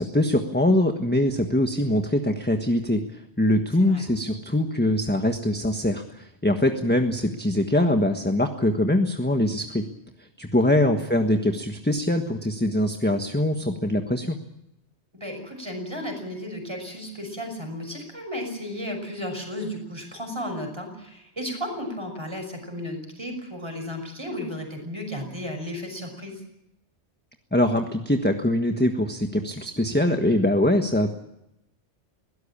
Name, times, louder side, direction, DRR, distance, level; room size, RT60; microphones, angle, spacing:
voice 1, 0.0-9.8 10.4-14.3 27.5-31.1, left 1 dB, 10° left, 5 dB, 1.4 m, -23 dB
voice 2, 15.1-26.4, left 1 dB, 25° right, 4 dB, 6.1 m, -34 dB
21.5 x 17.5 x 8.7 m, 0.83 s
omnidirectional pair, 1.2 m